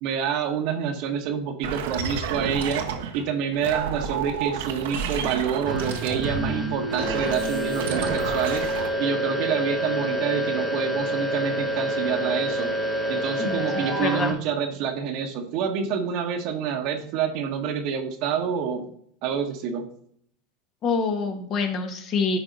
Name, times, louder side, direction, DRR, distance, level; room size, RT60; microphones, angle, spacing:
voice 1, 0.0-2.8 3.1-8.6 9.0-12.7 13.1-18.9 19.2-19.9, right 7 dB, 60° right, 3 dB, 1.1 m, -27 dB
sound 1, 1.6-3.2 3.5-8.9, right 7 dB, 75° right, 1.0 m, -31 dB
sound 2, 5.7-14.3, right 1 dB, 10° left, 1.9 m, -28 dB
voice 2, 13.4-14.4 20.8-22.4, left 4 dB, 45° left, 5 dB, 1.5 m, -26 dB
10.5 x 4.0 x 4.0 m, 0.65 s
hypercardioid pair, 95°, 0 cm